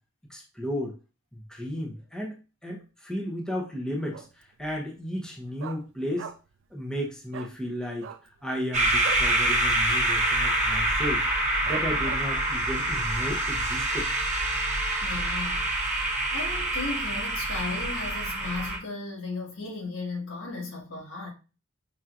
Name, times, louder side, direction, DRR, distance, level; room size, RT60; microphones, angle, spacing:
voice 1, 0.3-0.9 1.3-4.2 4.6-6.3 6.7-8.1 8.4-11.3 11.6-14.1, equal, 5° left, 0.9 m, -34 dB
Dog, 4.1-4.5 4.8-4.9 5.2-6.6 6.9-7.0 7.3-7.5 7.9-9.3 9.7-9.9 10.1-10.5 11.0-11.1 11.7-12.5 12.9-13.0, right 7 dB, 70° right, 0.4 m, -40 dB
sound 1, 8.7-18.8, right 1 dB, 40° right, 1.1 m, -26 dB
voice 2, 15.0-21.3, left 3 dB, 80° left, 1.6 m, -36 dB
5.7 x 3.1 x 2.5 m
head